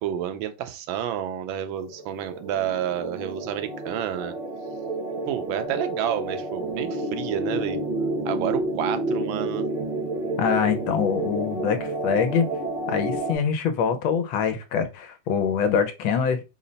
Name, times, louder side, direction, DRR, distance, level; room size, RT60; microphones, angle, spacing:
voice 1, 0.0-4.3 5.3-7.8 8.2-9.7, right 10 dB, 80° right, 1.3 m, -29 dB
sound 1, 1.9-13.3, right 1 dB, 35° right, 0.7 m, -30 dB
voice 2, 10.4-12.4 12.9-16.4, left 7 dB, 80° left, 1.5 m, -24 dB
3.9 x 2.1 x 3.9 m
omnidirectional pair, 2.2 m